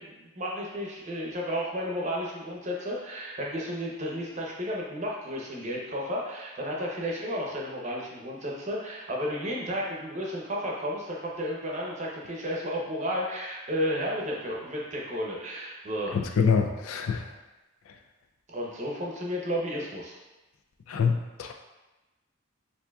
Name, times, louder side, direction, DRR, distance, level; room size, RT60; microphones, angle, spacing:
voice 1, 0.0-16.2 18.5-20.1, equal, 35° right, -3 dB, 0.7 m, -32 dB
voice 2, 16.1-17.3 20.9-21.5, left 5 dB, 70° left, 4 dB, 0.4 m, -25 dB
6.9 x 2.7 x 2.3 m, 1.1 s
head